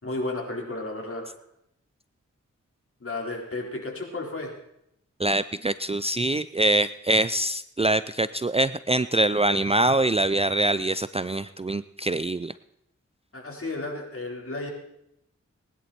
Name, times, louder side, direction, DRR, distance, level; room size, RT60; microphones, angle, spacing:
voice 1, 0.0-1.2 3.0-4.5 13.3-14.7, left 2 dB, 45° left, 0 dB, 4.4 m, -33 dB
voice 2, 5.2-12.5, right 1 dB, 20° right, 15 dB, 0.5 m, -24 dB
20.5 x 11.0 x 4.4 m, 0.78 s
cardioid pair, 45°, 31 cm